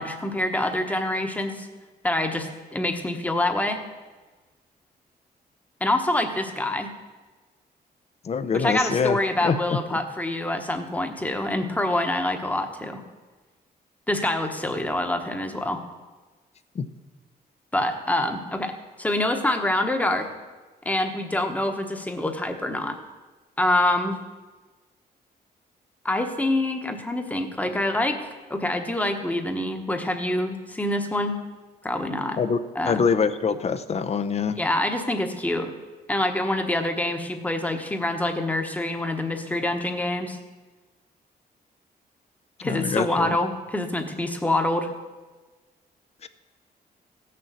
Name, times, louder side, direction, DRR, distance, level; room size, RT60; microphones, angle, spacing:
voice 1, 0.0-1.7 2.0-3.8 5.8-6.9 8.5-13.0 14.1-15.8 17.7-20.3 20.8-23.0 23.6-24.2 26.0-31.4 31.8-32.4 32.7-33.1 34.6-35.7 36.1-40.4 42.6-44.9, left 1 dB, 10° left, 6 dB, 1.1 m, -26 dB
voice 2, 8.2-9.8 16.7-16.8 32.4-34.6 42.6-43.3 46.2-46.3, left 6 dB, 40° left, 11 dB, 0.7 m, -25 dB
15.5 x 6.8 x 7.5 m, 1.3 s
wide cardioid pair, 155°, 17 cm